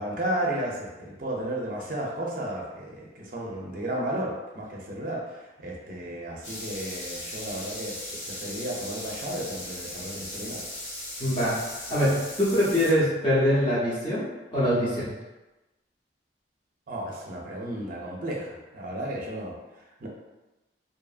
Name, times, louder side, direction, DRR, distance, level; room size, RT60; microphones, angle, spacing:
voice 1, 0.0-10.6 16.9-20.1, right 1 dB, 45° right, -2 dB, 0.5 m, -33 dB
sound 1, 6.4-12.9, left 1 dB, 80° left, 1.4 m, -38 dB
voice 2, 11.2-11.6 11.9-14.3 14.5-15.1, equal, 25° left, -10 dB, 0.7 m, -23 dB
2.7 x 2.5 x 2.4 m, 1.1 s
head